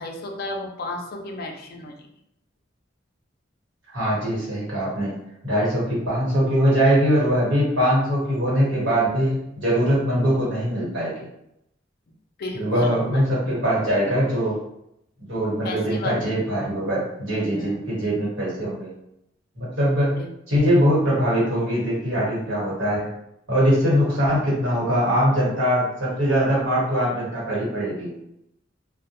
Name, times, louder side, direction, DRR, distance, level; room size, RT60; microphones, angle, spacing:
voice 1, 0.0-1.9 12.4-13.2 15.6-16.3 17.5-17.9 20.2-20.3, left 2 dB, 50° left, 2 dB, 0.4 m, -33 dB
voice 2, 3.9-5.1 5.4-11.1 12.5-14.6 15.3-18.9 19.5-20.2 20.5-23.1 23.5-28.1, equal, 75° right, -7 dB, 1.3 m, -22 dB
2.2 x 2.1 x 2.9 m, 0.79 s
head